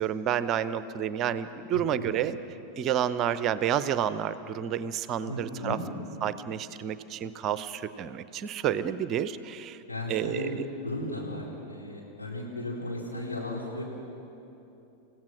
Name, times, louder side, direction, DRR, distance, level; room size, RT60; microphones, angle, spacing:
voice 1, 0.0-2.4 2.8-5.8 6.2-9.8 10.1-10.5, right 9 dB, 35° right, 14 dB, 0.7 m, -29 dB
voice 2, 1.7-2.2 5.2-5.8 9.9-10.5 10.8-13.8, left 1 dB, 80° left, -3 dB, 4.2 m, -35 dB
28.5 x 16.0 x 6.2 m, 3.0 s
figure-of-eight pair, 90°, 0 cm